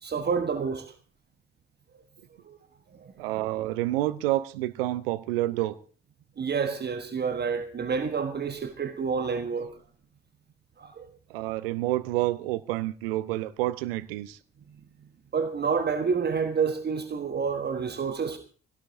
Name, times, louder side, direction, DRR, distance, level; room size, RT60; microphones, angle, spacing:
voice 1, 0.0-0.9 2.4-2.6 3.0-3.1 6.4-9.8 10.8-11.1 15.3-18.4, right 6 dB, 35° right, 1.3 m, -29 dB
voice 2, 3.2-5.8 11.3-14.4, right 16 dB, 70° right, 0.7 m, -28 dB
21.0 x 17.0 x 2.8 m
figure-of-eight pair, 45°, 30 cm